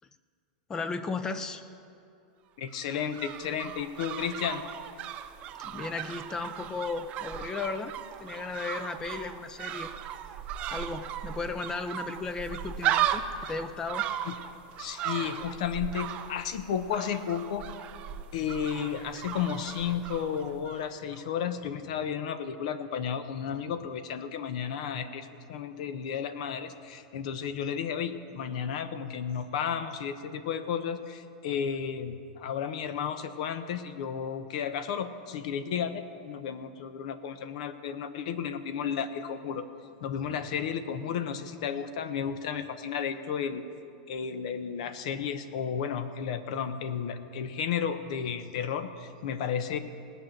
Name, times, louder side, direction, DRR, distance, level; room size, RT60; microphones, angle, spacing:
voice 1, 0.7-1.6 5.6-7.9 8.2-9.9 10.7-14.0 15.1-15.2, left 4 dB, 15° left, 11 dB, 0.6 m, -35 dB
voice 2, 2.6-4.6 14.2-14.3 14.8-17.7 18.3-39.6 40.0-43.7 44.1-49.8, left 7 dB, 60° left, 11 dB, 0.9 m, -33 dB
sound 1, 2.7-20.9 21.1-21.2, right 11 dB, 30° right, 0.5 m, -36 dB
18.0 x 6.2 x 9.0 m, 2.5 s
supercardioid pair, 160°, 4 cm